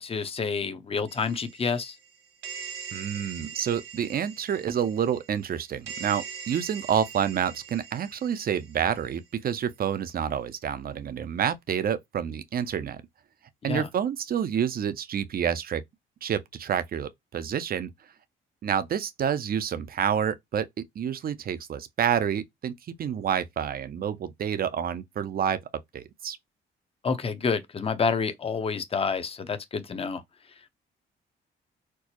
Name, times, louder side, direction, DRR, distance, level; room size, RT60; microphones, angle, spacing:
voice 1, 0.0-1.9 13.6-13.9 27.0-30.2, left 5 dB, 30° left, 0.7 m, -28 dB
sound 1, 1.1-9.2, right 7 dB, 75° right, 2.0 m, -42 dB
voice 2, 2.9-13.0 13.6-15.8 16.2-17.9 18.6-22.7 23.0-25.6 25.9-26.4, right 8 dB, 50° right, 0.6 m, -28 dB
4.4 x 2.0 x 2.9 m
cardioid pair, 90°, 20 cm